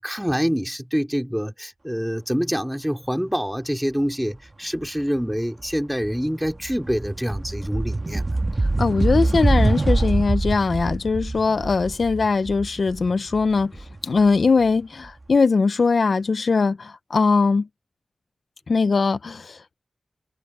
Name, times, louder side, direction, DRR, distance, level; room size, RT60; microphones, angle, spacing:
voice 1, 0.0-8.3, equal, 5° right, 3.0 m, -26 dB
sound 1, 5.1-5.4 5.7-14.6, right 2 dB, 35° right, 1.6 m, -24 dB
voice 2, 8.8-13.7 14.0-17.7 18.7-19.7, left 4 dB, 70° left, 0.6 m, -21 dB
wide cardioid pair, 65°, 0 cm